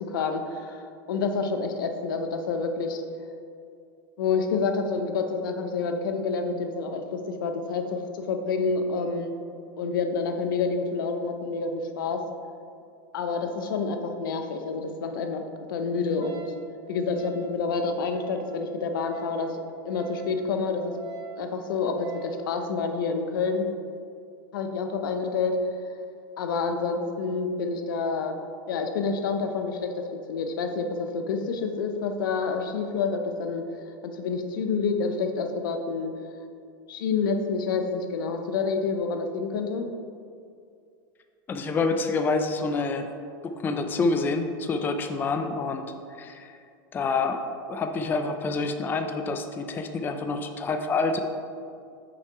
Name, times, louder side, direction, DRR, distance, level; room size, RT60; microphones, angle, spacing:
voice 1, 0.1-3.0 4.2-9.3 9.8-12.2 13.1-16.5 16.9-20.8 21.4-23.7 24.5-25.6 26.4-28.4 28.7-33.6 34.0-36.1 36.9-39.9, left 4 dB, 85° left, 6 dB, 0.7 m, -28 dB
Wind instrument woodwind instrument, 16.2-22.4, right 6 dB, 45° right, 1.0 m, -45 dB
voice 2, 41.5-43.1 43.4-46.6 46.9-47.4 47.7-51.2, left 3 dB, 20° left, 6 dB, 0.4 m, -27 dB
6.3 x 4.6 x 4.3 m, 2.4 s
supercardioid pair, 125°, 11 cm